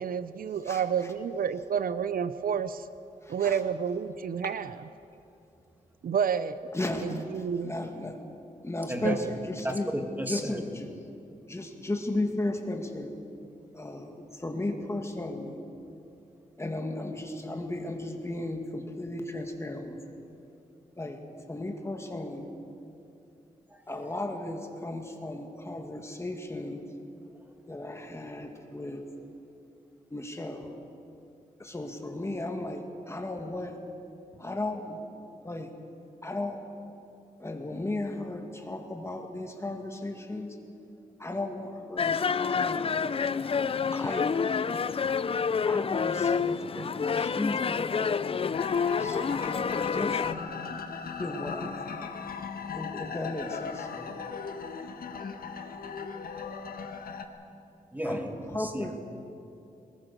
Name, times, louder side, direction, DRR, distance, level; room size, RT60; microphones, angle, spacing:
voice 1, 0.0-2.9 3.3-4.8 6.0-6.6 7.0-7.7 9.0-9.3, right 7 dB, 75° right, 13 dB, 0.6 m, -29 dB
voice 2, 0.6-1.1 3.2-3.6 6.7-8.2 8.6-9.9 10.2-10.9 11.5-13.1 13.7-15.6 16.6-20.3 21.0-21.2 21.5-22.5 23.9-26.8 27.7-29.0 30.1-30.7 31.6-33.8 34.4-35.0 35.4-35.7 36.2-36.6 37.4-40.6 41.2-42.9 43.5-44.8 45.6-48.4 49.0-49.7 49.9-50.4 51.2-52.0 52.7-54.2 58.0-59.0, left 2 dB, 20° left, 3 dB, 2.2 m, -35 dB
voice 3, 9.6-10.6 23.7-23.8 57.9-58.8, right 1 dB, 10° right, 4 dB, 1.9 m, -33 dB
sound 1, 42.0-50.3, left 6 dB, 40° left, 0.4 m, -28 dB
sound 2, 48.5-57.3, left 6 dB, 80° left, 1.5 m, -38 dB
22.5 x 20.5 x 6.8 m, 2.6 s
wide cardioid pair, 130°, 15 cm